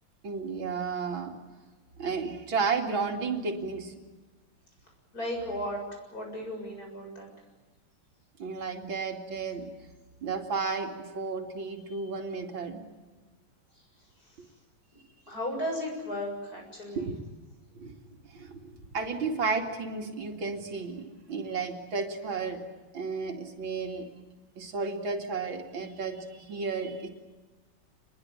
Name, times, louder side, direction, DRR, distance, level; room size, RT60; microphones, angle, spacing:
voice 1, 0.2-1.4 2.0-3.9 8.4-9.7 10.2-12.8 17.0-17.1 17.7-22.7 22.9-24.1 24.6-27.1, right 4 dB, 85° right, 3 dB, 3.3 m, -33 dB
voice 2, 5.1-5.8 6.1-7.3 15.3-17.1, equal, 45° left, 2 dB, 7.9 m, -35 dB
27.0 x 21.5 x 8.9 m, 1.2 s
omnidirectional pair, 2.1 m